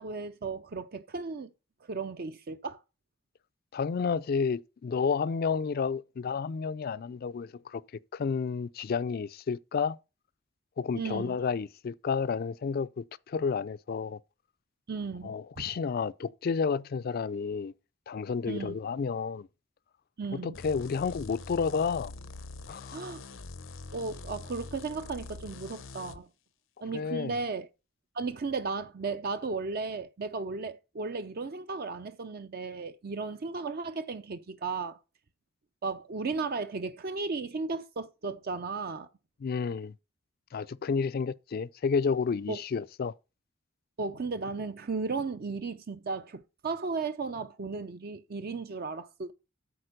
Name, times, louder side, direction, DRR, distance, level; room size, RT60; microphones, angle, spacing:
voice 1, 0.0-1.5 1.9-2.8 10.9-11.4 14.9-15.6 18.5-18.8 20.2-20.6 22.9-23.2 23.9-26.3 26.8-27.7 28.1-35.0 35.8-39.1 42.5-42.6 44.0-49.3, right 4 dB, 50° right, 0.5 m, -35 dB
voice 2, 3.7-7.8 8.1-10.0 10.8-14.2 15.2-17.7 18.1-19.5 20.3-22.1 22.7-23.0 26.9-27.3 39.4-39.9 40.5-43.1, left 5 dB, 50° left, 0.4 m, -31 dB
sound 1, 20.5-26.2, left 3 dB, 85° left, 0.7 m, -44 dB
8.8 x 4.3 x 6.5 m
head